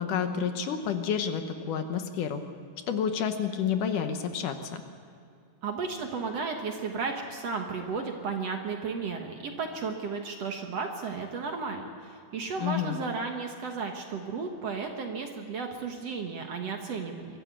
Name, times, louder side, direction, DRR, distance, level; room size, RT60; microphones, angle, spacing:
voice 1, 0.0-2.4 2.9-4.8 12.6-13.0, left 7 dB, 70° left, 7 dB, 2.5 m, -29 dB
voice 2, 5.6-17.4, right 4 dB, 55° right, 3 dB, 2.1 m, -34 dB
23.0 x 14.5 x 8.4 m, 2.4 s
omnidirectional pair, 4.0 m